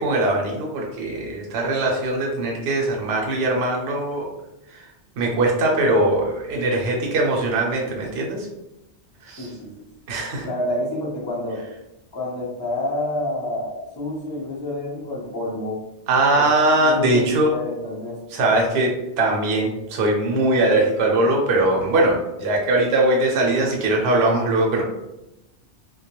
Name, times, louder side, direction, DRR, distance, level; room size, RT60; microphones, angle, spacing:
voice 1, 0.0-4.3 4.7-4.8 5.2-8.5 9.2-9.5 10.1-10.5 16.1-17.5 18.3-24.8, right 2 dB, 70° right, 0 dB, 0.8 m, -21 dB
voice 2, 9.4-9.7 10.4-11.6 12.1-15.8 16.4-16.5 16.8-18.5, left 1 dB, 25° left, -4 dB, 0.5 m, -28 dB
2.2 x 2.1 x 2.8 m, 0.92 s
omnidirectional pair, 1.1 m